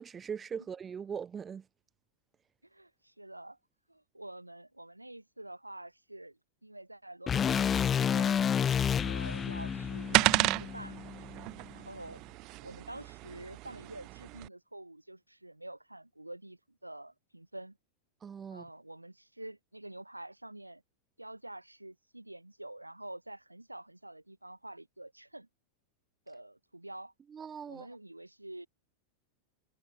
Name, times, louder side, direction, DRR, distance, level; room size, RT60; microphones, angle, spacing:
voice 1, 0.0-1.7 18.2-18.7 27.3-27.9, right 7 dB, 20° right, 4.4 m, -40 dB
voice 2, 2.6-3.6 3.9-8.4 9.0-10.2 10.6-11.0 11.5-12.2 12.6-17.8 18.5-20.8 21.2-25.5 26.3-27.1 27.7-28.7, right 1 dB, 85° right, 5.4 m, -47 dB
sound 1, 7.3-11.4, left 8 dB, 25° left, 1.4 m, -30 dB
sound 2, 9.0-14.5, right 23 dB, 40° right, 3.4 m, -33 dB
figure-of-eight pair, 90°, 0 cm